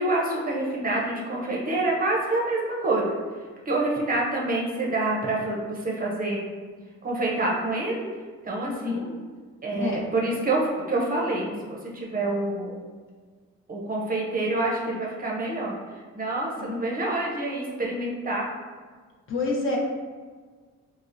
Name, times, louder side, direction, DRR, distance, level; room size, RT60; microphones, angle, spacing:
voice 1, 0.0-3.1 3.7-6.5 7.0-8.0 8.4-9.1 9.6-12.8 13.7-15.8 16.1-18.5, right 2 dB, 30° right, -2 dB, 0.6 m, -27 dB
voice 2, 8.6-9.1 9.7-10.0 16.6-16.8 19.3-19.8, left 3 dB, 45° left, -2 dB, 0.6 m, -28 dB
3.4 x 2.0 x 2.5 m, 1.5 s
cardioid pair, 90°, 30 cm